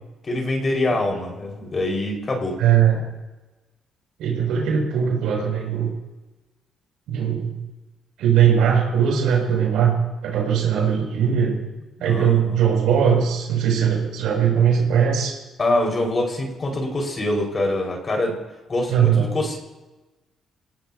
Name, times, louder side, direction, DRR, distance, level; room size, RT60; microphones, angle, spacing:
voice 1, 0.3-2.6 12.1-12.6 15.6-18.4 18.7-19.6, left 1 dB, 35° left, 1 dB, 5.3 m, -24 dB
voice 2, 2.6-3.0 4.2-5.9 7.1-7.6 8.2-9.9 10.2-11.6 12.0-15.3 18.9-19.4, right 8 dB, 85° right, -1 dB, 6.8 m, -20 dB
25.0 x 18.0 x 2.9 m, 1.1 s
cardioid pair, 90°, 0 cm